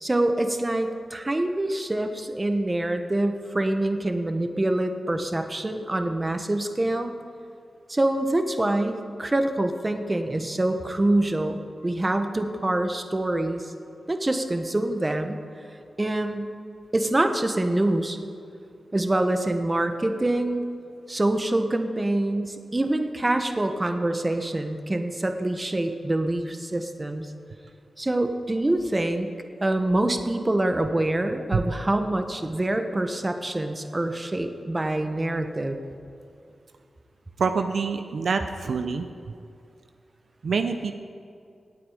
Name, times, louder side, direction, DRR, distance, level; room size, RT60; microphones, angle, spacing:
voice 1, 0.0-7.1 7.9-13.7 14.1-15.4 16.0-16.5 16.9-18.2 18.9-20.6 21.1-27.3 28.0-29.3 29.6-35.8, right 1 dB, 25° right, 7 dB, 1.1 m, -25 dB
voice 2, 37.4-39.1 40.4-40.9, right 5 dB, 75° right, 7 dB, 0.6 m, -26 dB
18.0 x 8.6 x 5.0 m, 2.5 s
cardioid pair, 60°, 0 cm